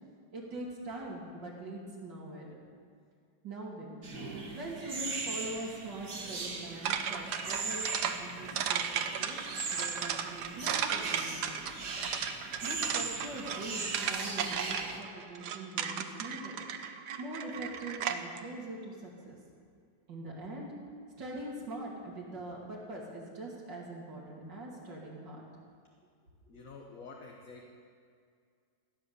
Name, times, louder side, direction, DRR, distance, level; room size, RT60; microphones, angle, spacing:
voice 1, 0.3-2.6 3.4-4.0 4.5-11.6 12.6-16.6 17.2-19.4 20.1-20.7 21.2-25.4, right 1 dB, 90° right, -3 dB, 3.4 m, -43 dB
sound 1, 4.0-15.0, right 4 dB, 50° right, 2.0 m, -39 dB
sound 2, 6.8-18.4, right 8 dB, 75° right, 1.4 m, -35 dB
voice 2, 26.5-27.8, left 3 dB, 55° left, 1 dB, 1.4 m, -49 dB
16.5 x 10.0 x 6.9 m, 2.2 s
omnidirectional pair, 1.9 m